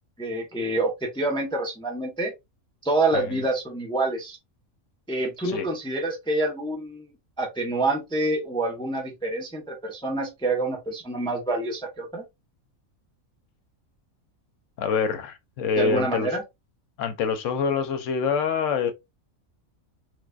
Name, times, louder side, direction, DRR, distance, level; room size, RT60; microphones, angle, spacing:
voice 1, 0.2-2.3 2.8-4.4 5.1-7.0 7.4-12.2 15.8-16.4, right 2 dB, 5° left, 0.5 m, -27 dB
voice 2, 14.8-16.3 17.0-18.9, left 5 dB, 70° left, 0.9 m, -26 dB
4.6 x 2.3 x 2.3 m
omnidirectional pair, 1.5 m